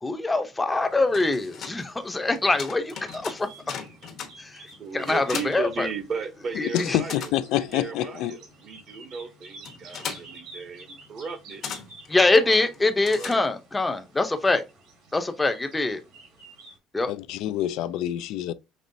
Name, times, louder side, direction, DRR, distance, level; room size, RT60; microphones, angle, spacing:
voice 1, 0.0-3.5 4.4-4.6 4.9-5.9 6.6-7.0 12.1-14.6 15.1-16.0 16.9-17.1, left 2 dB, 15° left, 0.6 m, -24 dB
sound 1, 0.7-16.8, right 3 dB, 75° right, 1.7 m, -51 dB
sound 2, 0.9-6.5 6.7-13.8, left 7 dB, 50° left, 1.0 m, -40 dB
voice 2, 4.8-11.6 12.3-12.7 13.1-13.4, right 5 dB, 35° right, 0.8 m, -36 dB
voice 3, 6.7-8.4 17.1-18.5, left 12 dB, 70° left, 0.3 m, -27 dB
5.3 x 3.0 x 2.6 m
cardioid pair, 135°, 0 cm